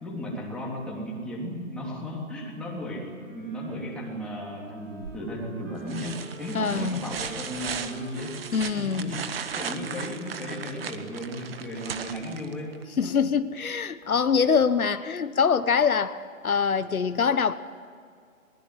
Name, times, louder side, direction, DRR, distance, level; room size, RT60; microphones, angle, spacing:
voice 1, 0.0-8.4 8.8-12.8, equal, ahead, 3.2 m, -35 dB
Wind instrument woodwind instrument, 3.1-11.5, right 2 dB, 60° right, 3.5 m, -48 dB
sound 1, 5.0-5.4 5.9-12.8 14.6-14.7, right 7 dB, 45° right, 1.6 m, -37 dB
voice 2, 6.5-7.0 8.5-9.1 13.0-17.5, left 6 dB, 80° left, 1.3 m, -24 dB
22.0 x 21.0 x 9.8 m
hypercardioid pair, 155°, 42 cm